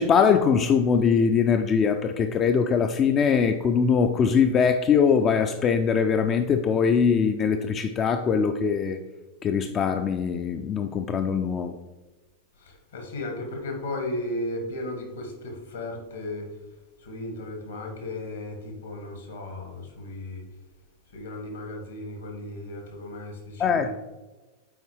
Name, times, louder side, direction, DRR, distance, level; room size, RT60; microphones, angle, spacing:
voice 1, 0.0-9.0 9.4-11.7 23.6-23.9, left 6 dB, 30° left, 7 dB, 0.3 m, -22 dB
voice 2, 12.6-16.5 17.0-20.4 21.1-23.9, left 1 dB, 70° left, 2 dB, 1.7 m, -35 dB
7.8 x 4.6 x 3.2 m, 1.2 s
figure-of-eight pair, 90°, 0 cm